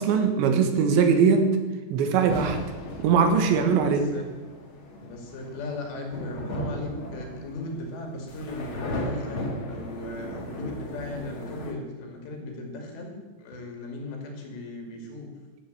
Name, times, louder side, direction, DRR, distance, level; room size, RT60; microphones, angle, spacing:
voice 1, 0.0-1.6 1.9-2.6 3.0-4.0, right 6 dB, 85° right, 6 dB, 3.7 m, -21 dB
sound 1, 2.3-11.7, equal, 50° left, 1.6 m, -36 dB
voice 2, 3.8-4.3 5.0-15.3, left 2 dB, 75° left, 2 dB, 4.6 m, -37 dB
13.0 x 8.1 x 8.5 m, 1.2 s
omnidirectional pair, 5.1 m